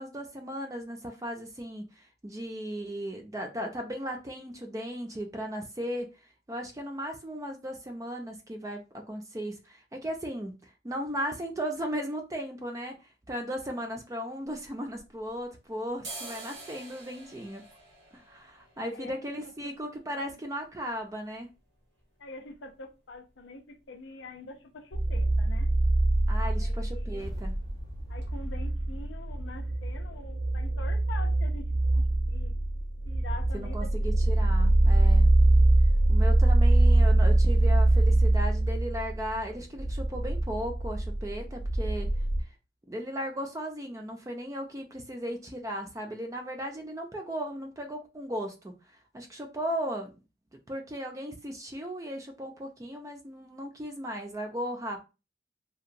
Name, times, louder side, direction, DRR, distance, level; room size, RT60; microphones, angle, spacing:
voice 1, 0.0-6.1 6.5-17.6 18.1-21.5 26.3-27.5 33.5-35.3 36.1-42.1 42.9-48.7 49.1-50.2 50.7-55.0, equal, 15° right, 0.4 m, -36 dB
sound 1, 14.5-15.5 15.9-23.6 23.9-24.0 24.2-24.8 25.1-25.3 25.6-25.8 26.1-26.8 27.2-27.3 27.8-27.9 28.2-28.3, right 2 dB, 90° right, 0.9 m, -49 dB
voice 2, 18.9-19.7 20.2-20.4 22.2-25.7 26.4-27.2 28.1-32.5 33.0-33.9 34.4-34.7, left 3 dB, 80° left, 0.5 m, -45 dB
sound 2, 24.9-42.4, right 1 dB, 70° right, 0.5 m, -24 dB
sound 3, 27.1-31.4, equal, 20° left, 0.7 m, -43 dB
2.8 x 2.2 x 2.5 m
head